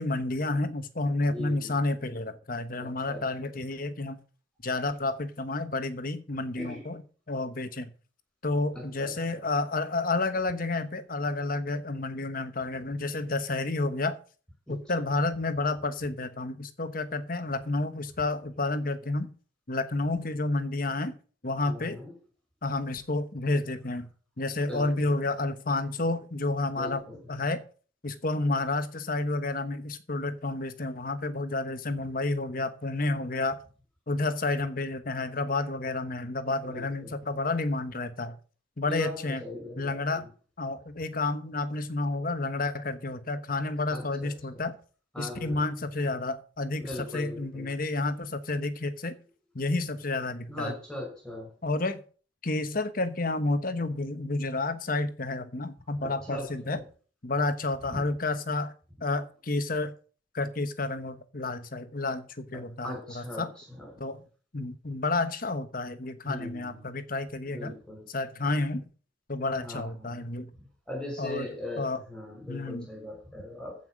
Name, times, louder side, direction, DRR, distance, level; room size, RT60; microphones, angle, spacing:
voice 1, 0.0-4.2 4.6-7.9 8.4-14.2 14.7-19.3 19.7-21.2 21.4-22.0 22.6-24.1 24.4-27.6 28.0-33.6 34.1-38.4 38.8-39.4 39.8-40.3 40.6-44.8 45.2-49.2 49.5-50.7 51.6-52.0 52.4-56.8 57.2-58.7 59.0-59.9 60.3-63.5 64.0-64.2 64.5-67.8 68.1-68.9 69.3-70.5 71.2-71.5 71.8-72.0 72.5-72.9, left 2 dB, 45° left, 1.2 m, -30 dB
voice 2, 1.3-1.7 3.1-3.5 6.6-6.8 8.7-9.1 14.7-14.8 21.7-22.1 24.7-24.9 26.7-27.2 36.6-37.1 38.9-39.1 39.4-40.0 43.9-44.3 45.1-45.6 46.8-47.7 50.5-51.5 56.0-56.8 57.9-58.0 62.8-63.4 63.7-63.9 66.2-66.8 67.5-68.0 69.6-70.2 70.9-73.8, left 1 dB, 5° left, 6.0 m, -39 dB
15.0 x 5.8 x 6.3 m
head